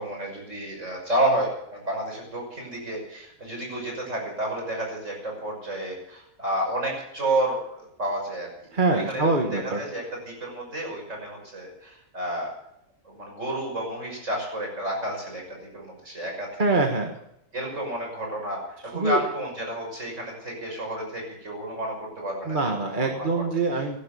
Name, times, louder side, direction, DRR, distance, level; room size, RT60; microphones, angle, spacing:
voice 1, 0.0-8.5 8.9-12.5 13.0-16.6 17.5-23.4, right 1 dB, 55° right, 0 dB, 6.5 m, -31 dB
voice 2, 8.7-9.8 16.6-17.2 18.9-19.2 22.5-24.0, right 3 dB, 35° right, 2 dB, 1.6 m, -24 dB
16.5 x 11.5 x 6.9 m, 0.79 s
omnidirectional pair, 1.5 m